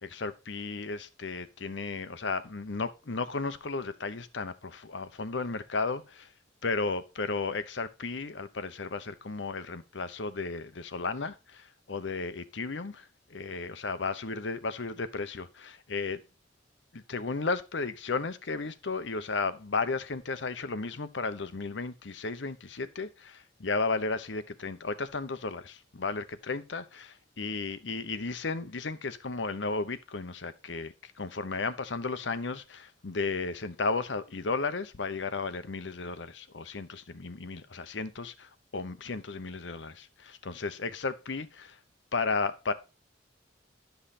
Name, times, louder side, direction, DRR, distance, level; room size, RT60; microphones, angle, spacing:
voice 1, 0.0-6.3 6.6-16.2 16.9-41.8 42.1-42.7, left 4 dB, 75° left, 0.9 m, -34 dB
11.5 x 5.6 x 4.2 m
head